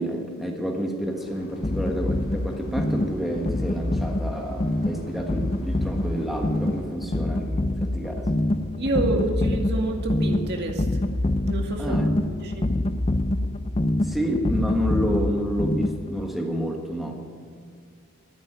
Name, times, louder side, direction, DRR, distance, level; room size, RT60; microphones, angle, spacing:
voice 1, 0.0-8.3 11.8-12.1 14.0-17.3, equal, ahead, 2 dB, 1.5 m, -29 dB
sound 1, 1.1-6.8, left 3 dB, 60° left, 3.3 m, -47 dB
sound 2, 1.6-16.3, left 1 dB, 25° left, 0.5 m, -26 dB
voice 2, 8.8-11.0 11.4-12.0 12.2-12.7, right 2 dB, 50° right, 2 dB, 2.2 m, -28 dB
13.5 x 10.5 x 9.0 m, 2.3 s
head